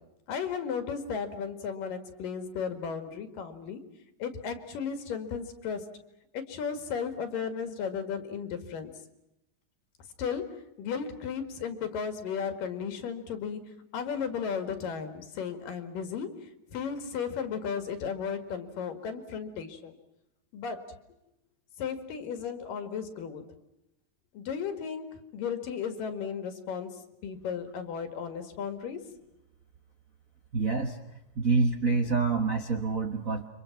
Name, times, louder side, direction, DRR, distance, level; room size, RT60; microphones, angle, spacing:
voice 1, 0.3-3.8 4.2-5.9 6.3-8.9 10.2-16.3 16.7-20.0 20.5-21.0 21.8-23.4 24.3-29.0, left 6 dB, 80° left, 9 dB, 3.6 m, -35 dB
voice 2, 30.5-31.0 31.3-33.5, right 4 dB, 65° right, 6 dB, 0.8 m, -27 dB
29.0 x 25.0 x 6.0 m, 0.89 s
omnidirectional pair, 3.8 m